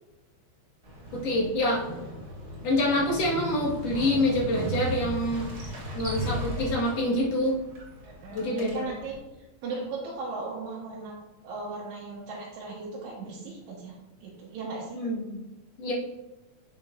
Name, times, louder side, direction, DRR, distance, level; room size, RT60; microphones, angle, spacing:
Motorcycle, 0.8-9.2, equal, 60° right, 0.6 m, -36 dB
voice 1, 1.1-1.9 2.6-5.5 5.9-7.6 8.3-8.8 14.9-15.4 15.8-15.9, left 1 dB, 65° left, -4 dB, 2.6 m, -26 dB
voice 2, 8.0-9.1 9.6-11.1 11.4-13.9 14.2-15.0, right 3 dB, 80° right, -6 dB, 2.6 m, -37 dB
7.9 x 7.4 x 2.5 m, 1.0 s
omnidirectional pair, 3.3 m